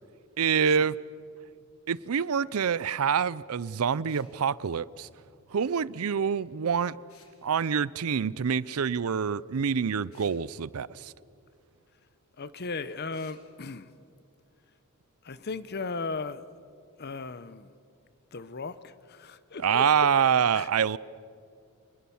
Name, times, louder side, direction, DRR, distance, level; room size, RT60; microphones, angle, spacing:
voice 1, 0.4-0.9 1.9-5.1 5.5-7.0 7.4-11.1 19.6-21.0, right 7 dB, 85° right, 20 dB, 0.5 m, -26 dB
sound 1, 4.1-4.3 7.1-7.4 10.1-10.4 13.1-13.4, left 6 dB, 80° left, 3.1 m, -58 dB
voice 2, 12.4-13.9 15.2-16.4 17.0-17.7 18.3-19.8 20.5-20.7, left 4 dB, 50° left, 15 dB, 0.8 m, -37 dB
26.5 x 21.0 x 7.1 m, 2.3 s
head